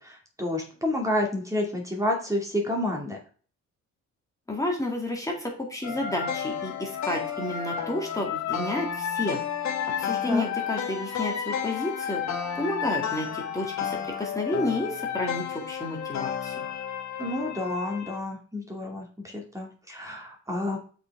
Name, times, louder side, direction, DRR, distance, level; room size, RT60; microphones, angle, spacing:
voice 1, 0.0-3.2 10.2-10.5 17.2-20.8, left 1 dB, 10° right, 0 dB, 2.4 m, -30 dB
voice 2, 4.5-9.4 10.0-12.2 12.5-16.5, left 1 dB, 10° left, 0 dB, 2.3 m, -31 dB
sound 1, 5.8-18.2, left 8 dB, 65° left, 1.5 m, -32 dB
6.7 x 5.1 x 4.8 m, 0.40 s
cardioid pair, 90°, 30 cm